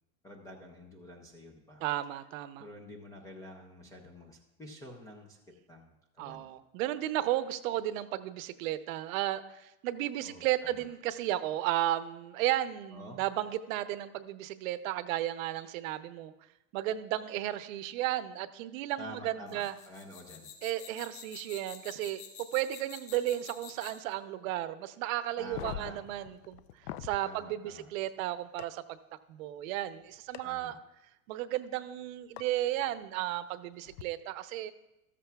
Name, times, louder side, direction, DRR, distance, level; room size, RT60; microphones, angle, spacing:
voice 1, 0.2-1.8 2.6-5.4 5.7-6.5 10.2-10.5 10.8-10.9 12.9-13.2 19.0-20.5 25.4-26.0 27.2-27.9 30.4-30.8, left 1 dB, 10° left, 0 dB, 0.3 m, -48 dB
voice 2, 1.8-2.7 6.2-16.3 16.7-19.7 20.6-22.2 22.5-26.6 27.0-29.0 29.3-30.8 31.3-34.7, right 14 dB, 60° right, 12 dB, 0.7 m, -34 dB
sound 1, 19.5-24.1, left 9 dB, 35° left, 3.2 m, -48 dB
sound 2, 25.4-27.2 28.6-28.7 30.3-30.4 32.4-32.5 33.8-34.0, left 12 dB, 80° left, 0.6 m, -42 dB
13.5 x 13.5 x 2.3 m, 0.94 s
supercardioid pair, 155°, 45 cm